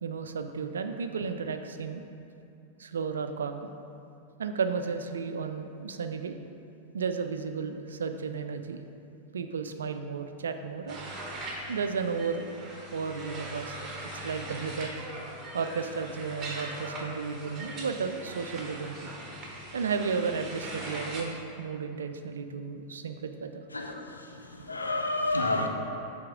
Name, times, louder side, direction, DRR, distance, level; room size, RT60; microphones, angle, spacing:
voice 1, 0.0-2.0 2.8-3.7 4.4-6.4 6.9-8.8 9.3-11.0 11.7-12.5 12.9-13.8 14.1-14.9 15.5-19.1 19.7-23.6, right 5 dB, 70° right, 8 dB, 0.4 m, -33 dB
sound 1, 10.9-21.2, right 1 dB, 25° right, 1.1 m, -40 dB
voice 2, 23.7-24.2 24.7-25.7, left 2 dB, 80° left, 2 dB, 0.6 m, -29 dB
7.5 x 3.5 x 4.9 m, 2.6 s
figure-of-eight pair, 90°, 0 cm